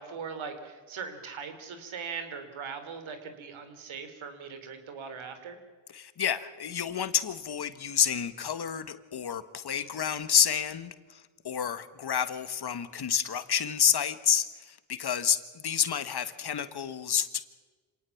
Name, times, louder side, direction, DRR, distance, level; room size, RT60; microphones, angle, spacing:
voice 1, 0.0-5.6, right 6 dB, 70° right, 8 dB, 3.7 m, -40 dB
voice 2, 5.9-17.5, left 8 dB, 50° left, 12 dB, 1.6 m, -29 dB
26.5 x 18.5 x 7.2 m, 1.3 s
cardioid pair, 70°, 49 cm